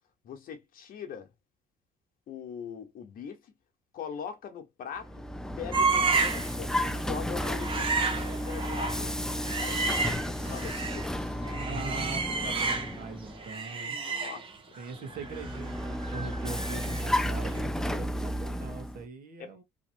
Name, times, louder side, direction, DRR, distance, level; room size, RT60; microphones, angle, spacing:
voice 1, 0.2-1.3 2.3-3.5 3.9-5.2 5.6-9.3 9.6-11.1 11.5-11.6 12.1-12.2 13.7-14.5 14.9-15.2 19.4-19.5, left 7 dB, 60° left, 1.0 m, -42 dB
Vehicle, 5.0-13.5 15.1-19.0, equal, 5° left, 0.3 m, -33 dB
sound 1, 5.7-6.5 6.8-7.0 7.4-11.1 11.4-13.1 13.4-17.2 17.4-17.6, right 4 dB, 30° right, 0.9 m, -31 dB
voice 2, 11.5-14.0 14.8-19.6, right 4 dB, 55° right, 1.2 m, -41 dB
3.0 x 2.9 x 2.6 m
cardioid pair, 110°, 17 cm